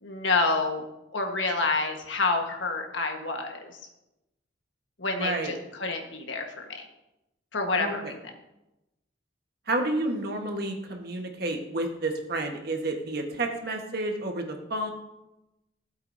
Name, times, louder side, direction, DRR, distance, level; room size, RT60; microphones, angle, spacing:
voice 1, 0.0-0.8 1.1-3.8 5.0-6.8 7.5-8.2, left 3 dB, 80° left, 3 dB, 1.4 m, -28 dB
voice 2, 5.1-5.5 7.8-8.1 9.7-14.9, right 2 dB, 55° right, 3 dB, 1.4 m, -30 dB
15.0 x 8.2 x 2.7 m, 0.95 s
head